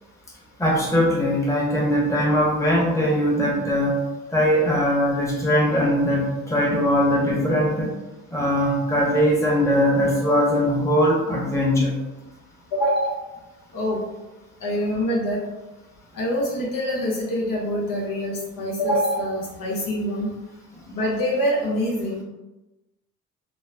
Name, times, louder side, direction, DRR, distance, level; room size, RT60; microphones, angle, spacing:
voice 1, 0.6-4.0 4.3-7.9 8.3-12.0, equal, 10° left, -4 dB, 1.0 m, -20 dB
voice 2, 12.7-13.2 13.7-14.0 14.6-15.4 16.1-20.3 20.9-22.2, equal, 60° left, -4 dB, 0.8 m, -25 dB
3.0 x 2.0 x 2.3 m, 1.0 s
hypercardioid pair, 50°, 37 cm